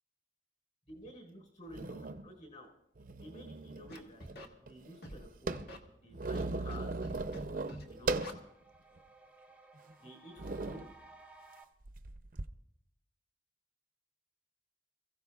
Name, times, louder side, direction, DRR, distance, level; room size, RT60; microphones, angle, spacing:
voice 1, 0.9-2.7 3.1-4.2 4.6-5.6 6.0-7.0 7.9-8.2 10.0-10.9, equal, 40° left, 1 dB, 4.3 m, -51 dB
sound 1, 1.1-1.2 1.7-2.3 3.0-4.0 4.3-4.4 4.7-8.4 9.0-9.1 9.8-9.9 10.4-10.9 11.9-12.5, right 2 dB, 50° right, 0.6 m, -38 dB
Scratching (performance technique), 3.9-4.5 5.0-5.2 5.5-5.8 6.3-6.8 7.0-7.4 7.7-7.8 8.2-8.3, equal, 60° left, 1.7 m, -46 dB
sound 2, 5.9-6.0 6.3-11.6, right 3 dB, 5° right, 0.6 m, -60 dB
27.5 x 15.5 x 2.4 m, 0.78 s
head